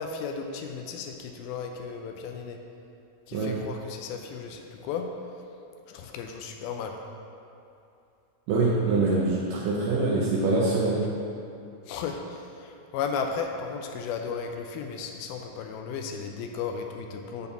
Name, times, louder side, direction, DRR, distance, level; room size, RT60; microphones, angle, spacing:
voice 1, 0.0-2.6 3.3-5.1 5.9-6.9 11.9-17.5, left 6 dB, 80° left, 3 dB, 2.3 m, -34 dB
voice 2, 3.3-3.7 8.5-11.1, right 3 dB, 80° right, -4 dB, 2.0 m, -24 dB
6.9 x 4.2 x 6.7 m, 2.6 s
omnidirectional pair, 4.5 m